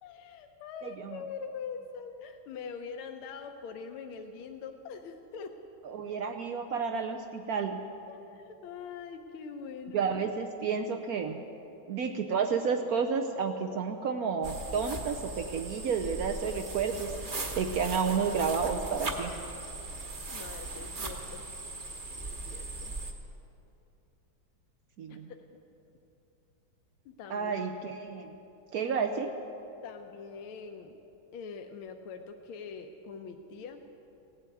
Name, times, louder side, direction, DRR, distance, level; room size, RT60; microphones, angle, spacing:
voice 1, 0.0-5.6 8.1-10.0 20.3-21.4 22.2-22.9 25.1-25.4 27.0-27.5 29.8-31.0 31.3-33.8, left 6 dB, 80° left, 5 dB, 1.6 m, -43 dB
voice 2, 0.8-1.2 5.8-7.8 9.9-11.4 11.9-17.1 17.6-19.3 25.0-25.3 27.3-28.3 28.7-29.3, right 6 dB, 75° right, 6 dB, 0.8 m, -31 dB
sound 1, 14.4-23.1, right 2 dB, 35° right, 0.9 m, -39 dB
17.0 x 8.2 x 9.1 m, 2.9 s
omnidirectional pair, 2.3 m